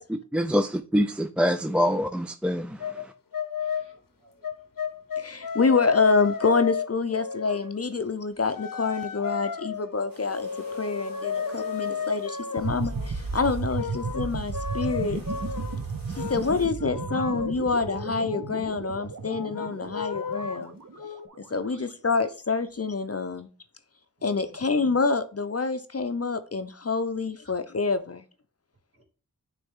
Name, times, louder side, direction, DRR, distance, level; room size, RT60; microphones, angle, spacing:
voice 1, 0.3-2.8, equal, 5° right, 0.3 m, -25 dB
sound 1, 2.8-3.1 3.3-3.9 4.4-7.8 8.5-12.7 13.7-15.8 16.2-16.4 16.8-18.8 19.2-21.3, left 7 dB, 80° left, 0.8 m, -33 dB
voice 2, 3.6-4.6 16.2-16.3 19.8-19.9 21.5-21.9 24.2-24.7 28.9-29.0, right 2 dB, 40° right, 2.6 m, -59 dB
voice 3, 5.2-10.5 10.8-15.2 16.1-20.7 21.5-23.5 24.2-28.2, left 4 dB, 45° left, 0.5 m, -27 dB
sound 2, 10.1-16.7, right 1 dB, 80° right, 2.2 m, -47 dB
sound 3, 12.6-21.4, right 4 dB, 60° right, 0.8 m, -34 dB
9.5 x 3.4 x 3.6 m
wide cardioid pair, 55°, 33 cm